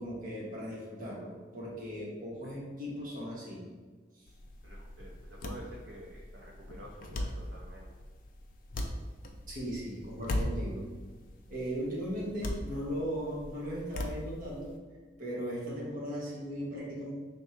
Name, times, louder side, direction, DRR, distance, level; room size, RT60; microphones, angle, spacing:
voice 1, 0.0-3.6 9.5-10.9 11.5-14.7 15.2-17.1, equal, 50° right, -5 dB, 1.1 m, -37 dB
sound 1, 4.3-14.8, left 1 dB, 50° left, 0.4 m, -39 dB
voice 2, 4.6-7.9, equal, 70° right, -3 dB, 0.5 m, -49 dB
3.5 x 2.2 x 4.3 m, 1.4 s
head